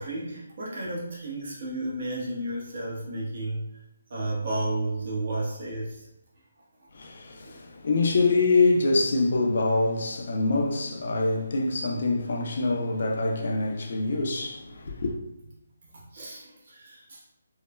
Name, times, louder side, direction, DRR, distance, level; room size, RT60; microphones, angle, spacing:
voice 1, 0.0-3.7 4.1-6.1 15.9-17.3, right 2 dB, 45° right, 0.7 m, -32 dB
voice 2, 6.9-15.2, left 3 dB, 55° left, 0.4 m, -25 dB
3.1 x 2.0 x 2.2 m
hypercardioid pair, 165°, 0 cm